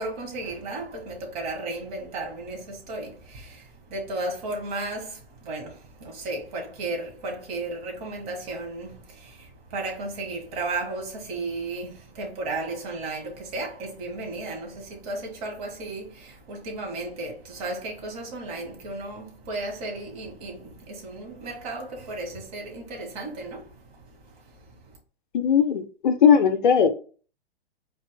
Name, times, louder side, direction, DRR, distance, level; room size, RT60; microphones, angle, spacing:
voice 1, 0.0-24.9, right 2 dB, 35° right, 1.8 m, -34 dB
voice 2, 25.3-26.9, left 7 dB, 50° left, 0.6 m, -19 dB
4.0 x 3.1 x 3.6 m
figure-of-eight pair, 110°, 31 cm